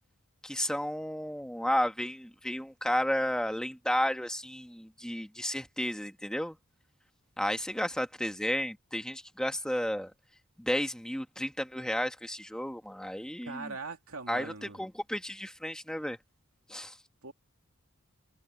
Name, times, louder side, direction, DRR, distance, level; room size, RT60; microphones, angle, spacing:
voice 1, 0.4-6.6 7.4-10.1 10.6-13.7 14.3-16.2 16.7-17.0, equal, 5° left, 1.5 m, -32 dB
voice 2, 13.4-14.8 17.2-17.3, right 4 dB, 75° right, 2.8 m, -41 dB
head